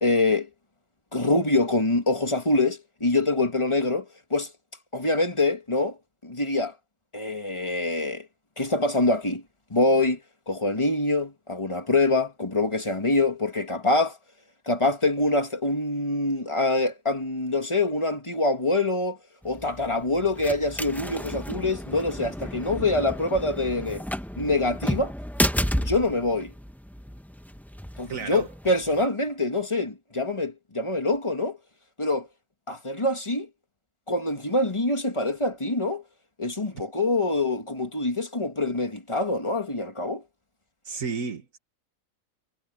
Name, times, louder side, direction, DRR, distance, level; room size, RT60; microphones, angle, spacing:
voice 1, 0.0-0.5 1.1-4.5 4.9-6.0 6.2-6.7 7.1-8.3 8.6-9.4 9.7-10.2 10.5-14.2 14.7-19.2 19.4-24.0 24.4-25.1 25.8-26.5 28.0-31.6 32.0-32.3 32.7-33.5 34.1-36.0 36.4-40.2, left 2 dB, 20° left, 2.1 m, -25 dB
sound 1, 19.4-29.1, equal, ahead, 0.8 m, -32 dB
voice 2, 28.1-28.5 40.8-41.6, right 5 dB, 85° right, 2.0 m, -32 dB
omnidirectional pair, 1.4 m